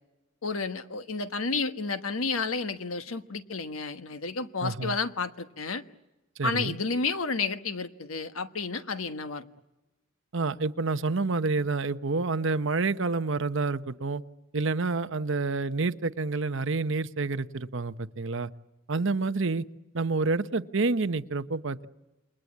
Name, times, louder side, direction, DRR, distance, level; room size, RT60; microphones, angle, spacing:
voice 1, 0.4-5.8 6.4-9.4, left 4 dB, 90° left, 10 dB, 1.3 m, -31 dB
voice 2, 4.6-5.0 6.4-6.8 10.3-14.2 14.5-18.5 18.9-19.6 19.9-21.9, right 3 dB, 65° right, 11 dB, 0.9 m, -28 dB
28.5 x 21.5 x 8.5 m, 1.1 s
head